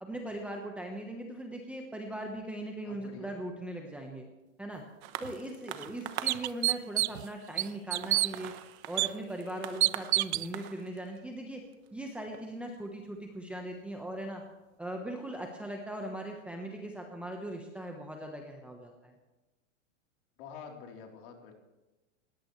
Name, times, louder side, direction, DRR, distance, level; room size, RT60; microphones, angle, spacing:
voice 1, 0.0-4.3 4.6-4.8 5.2-8.5 8.9-11.6 11.9-14.4 14.8-19.1, right 1 dB, 5° right, 1 dB, 1.1 m, -39 dB
voice 2, 2.8-3.3 5.3-5.6 20.4-21.5, left 6 dB, 45° left, 2 dB, 3.6 m, -48 dB
sound 1, 5.0-13.9 14.6-14.7, right 12 dB, 30° right, 1.0 m, -45 dB
sound 2, 5.2-5.3 5.8-5.9 6.3-7.3 7.6-8.3 9.0-9.1 9.8-10.5, right 17 dB, 60° right, 0.4 m, -27 dB
20.0 x 17.5 x 3.2 m, 1.1 s
supercardioid pair, 160°, 39 cm